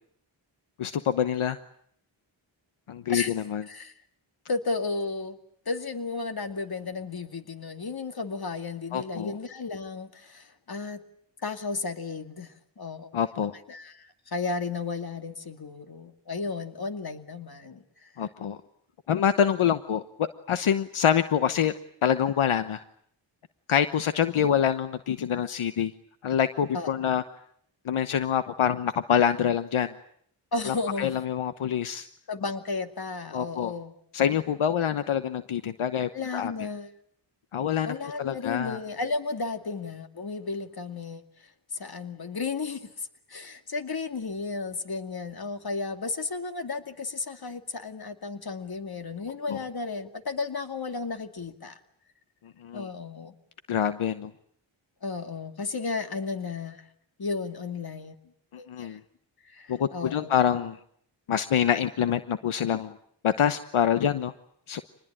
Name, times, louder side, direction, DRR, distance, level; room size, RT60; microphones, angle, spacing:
voice 1, 0.8-1.6 2.9-3.6 8.9-9.3 13.1-13.5 18.2-18.6 19.1-21.7 22.0-22.8 23.7-25.9 26.2-27.2 27.8-29.9 30.7-32.1 33.3-33.7 34.1-36.5 37.5-38.8 49.5-49.6 52.6-52.9 53.7-54.3 58.7-59.0 59.7-60.8 61.3-62.9 63.2-64.3 64.7-64.8, left 9 dB, 75° left, 11 dB, 1.1 m, -26 dB
voice 2, 4.5-5.4 5.7-11.0 11.4-13.1 13.7-18.1 26.7-26.9 30.5-31.1 32.3-33.9 36.0-36.9 37.9-51.8 52.7-53.3 55.0-56.8 57.2-58.2 58.6-59.0 59.4-60.3, left 4 dB, 45° left, 7 dB, 2.5 m, -34 dB
26.5 x 20.5 x 8.9 m, 0.67 s
cardioid pair, 65°, 49 cm